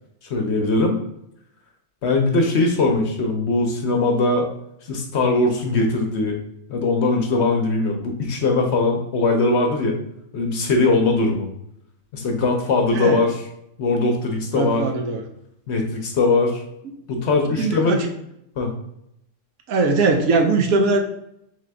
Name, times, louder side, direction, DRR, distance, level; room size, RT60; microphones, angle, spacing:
voice 1, 0.3-1.0 2.0-4.5 4.9-6.4 6.7-10.0 10.3-11.5 12.1-13.3 13.8-14.9 15.7-16.6 17.1-18.0 18.6-18.7, left 3 dB, 60° left, 3 dB, 0.8 m, -20 dB
voice 2, 12.9-13.2 14.5-15.2 17.6-18.1 19.7-21.0, right 3 dB, 80° right, 4 dB, 1.1 m, -20 dB
3.7 x 3.4 x 3.3 m, 0.78 s
omnidirectional pair, 1.5 m